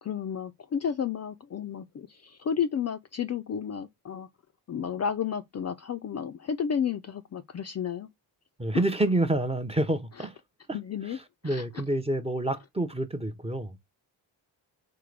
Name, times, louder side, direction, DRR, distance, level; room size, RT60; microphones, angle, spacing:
voice 1, 0.0-4.3 4.7-8.1 10.7-11.2 11.4-11.6, left 7 dB, 35° left, 0.4 m, -32 dB
voice 2, 8.6-10.4 10.7-10.8 11.1-13.8, right 1 dB, 15° right, 0.6 m, -28 dB
3.7 x 3.0 x 3.2 m
cardioid pair, 65°, 47 cm